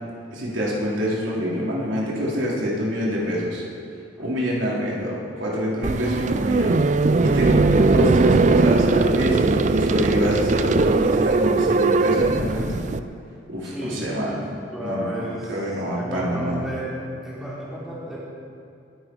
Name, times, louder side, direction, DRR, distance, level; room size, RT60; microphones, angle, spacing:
voice 1, 0.3-3.6 4.2-6.7 7.2-12.8 13.5-14.4 14.8-16.7, equal, 80° right, -5 dB, 3.9 m, -26 dB
sound 1, 5.8-13.0, right 3 dB, 40° right, 0.4 m, -19 dB
voice 2, 13.6-14.4 14.7-15.5 15.9-16.9 17.2-18.2, equal, ahead, -9 dB, 4.1 m, -32 dB
21.5 x 10.0 x 4.8 m, 2.5 s
head